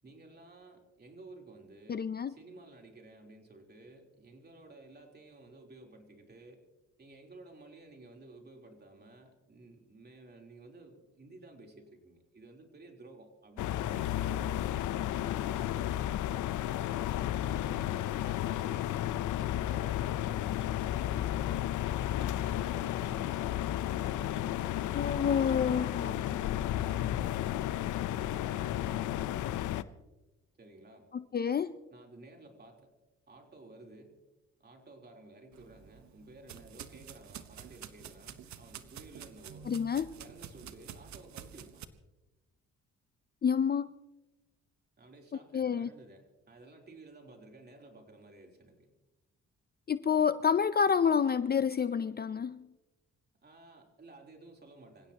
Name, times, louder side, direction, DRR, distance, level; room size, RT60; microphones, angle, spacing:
voice 1, 0.0-6.6 7.0-14.4 15.1-16.5 17.4-19.0 19.3-20.4 20.8-21.8 22.1-23.4 23.9-25.9 26.3-27.5 28.1-29.5 30.6-31.1 31.9-32.9 33.3-34.2 34.6-39.7 40.2-41.8 45.0-48.9 53.4-55.1, right 2 dB, 35° right, 3.7 m, -54 dB
voice 2, 1.9-2.3 24.9-26.4 31.1-31.7 39.7-40.1 43.4-43.9 45.5-45.9 49.9-52.7, left 7 dB, 30° left, 0.5 m, -28 dB
sound 1, 13.6-29.8, left 12 dB, 80° left, 0.7 m, -33 dB
sound 2, 35.5-41.9, right 9 dB, 70° right, 1.1 m, -49 dB
26.0 x 16.5 x 2.9 m
cardioid pair, 90°, 30 cm